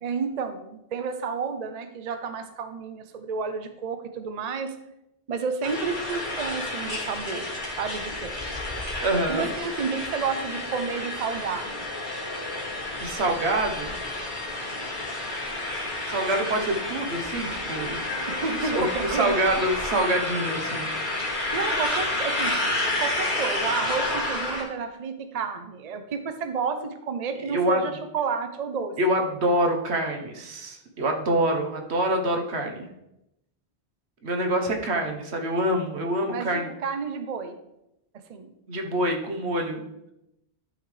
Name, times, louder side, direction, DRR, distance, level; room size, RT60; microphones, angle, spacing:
voice 1, 0.0-4.7 5.3-7.5 7.8-8.3 9.3-11.8 18.3-19.4 21.5-22.6 23.0-28.9 36.3-37.6 38.3-38.5, right 5 dB, 45° right, 8 dB, 0.6 m, -31 dB
sound 1, 5.6-24.6, left 2 dB, 50° left, 2.2 m, -30 dB
voice 2, 9.0-9.5 13.0-14.0 16.1-18.0 18.7-18.9 19.2-20.9 27.5-27.8 29.0-32.9 34.2-36.7 38.7-39.8, right 1 dB, 80° right, 3 dB, 1.4 m, -26 dB
12.0 x 5.8 x 3.3 m, 0.86 s
omnidirectional pair, 1.1 m